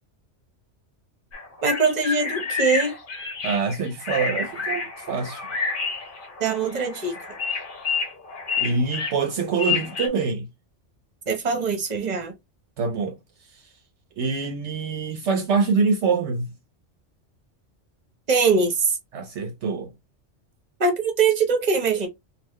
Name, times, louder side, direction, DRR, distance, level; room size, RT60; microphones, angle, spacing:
sound 1, 1.3-10.1, left 5 dB, 50° left, 1.0 m, -29 dB
voice 1, 1.6-3.0 6.4-7.2 11.3-12.3 18.3-19.0 20.8-22.1, right 4 dB, 40° right, 1.0 m, -22 dB
voice 2, 3.4-5.4 8.6-10.5 12.8-13.2 13.5-13.6 14.2-16.5 19.1-19.9, right 4 dB, 70° right, 0.8 m, -25 dB
3.6 x 2.3 x 3.0 m
omnidirectional pair, 1.2 m